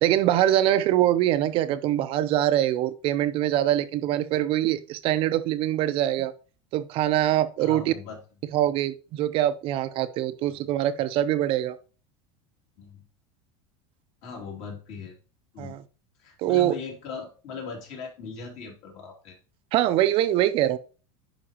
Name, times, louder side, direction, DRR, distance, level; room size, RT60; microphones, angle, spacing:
voice 1, 0.0-6.3 6.7-7.9 8.5-11.8 15.6-15.8 16.4-16.7 19.7-20.8, right 13 dB, 40° right, 0.5 m, -23 dB
voice 2, 7.6-8.2 10.5-10.6 12.8-13.0 14.2-15.2 15.5-15.7 16.2-19.4, left 5 dB, 50° left, 2.6 m, -39 dB
10.0 x 4.7 x 2.9 m
supercardioid pair, 150°, 14 cm